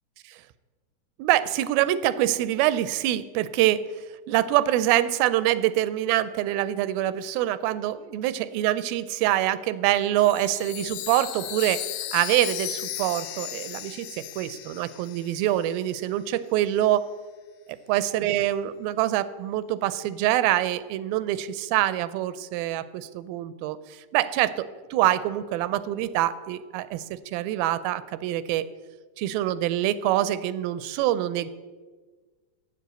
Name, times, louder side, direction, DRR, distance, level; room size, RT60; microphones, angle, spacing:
voice 1, 1.2-3.9 4.3-17.1 17.9-28.7 29.2-31.5, right 13 dB, 90° right, 15 dB, 2.4 m, -25 dB
Chime, 10.2-15.7, left 13 dB, 80° left, 2.3 m, -36 dB
8.8 x 7.7 x 8.0 m, 1.4 s
omnidirectional pair, 4.2 m